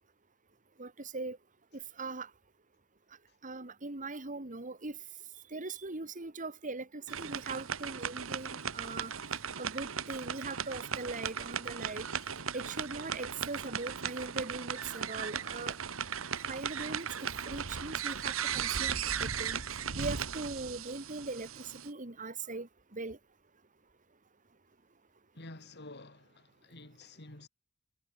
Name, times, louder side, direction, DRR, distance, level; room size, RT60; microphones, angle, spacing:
voice 1, 0.8-1.4 2.0-2.3 3.4-5.0 5.5-9.1 9.6-12.0 12.5-15.8 16.5-17.1 17.5-19.6 20.0-23.2, right 3 dB, 40° right, 2.1 m, -40 dB
sound 1, 7.1-21.9, right 7 dB, 80° right, 1.5 m, -37 dB
voice 2, 25.3-27.5, left 2 dB, 55° left, 4.7 m, -50 dB
head